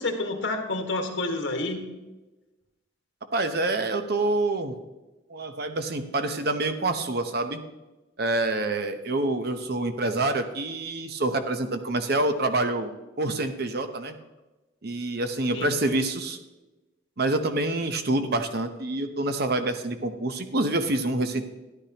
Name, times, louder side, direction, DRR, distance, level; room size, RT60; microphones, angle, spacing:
voice 1, 0.0-1.9 15.5-15.7, left 2 dB, 85° left, 3 dB, 1.6 m, -29 dB
voice 2, 3.3-4.7 5.3-7.6 8.2-12.9 13.2-14.2 14.8-16.4 17.2-21.4, right 2 dB, 55° right, 7 dB, 0.9 m, -27 dB
13.5 x 10.5 x 3.0 m, 1.1 s
head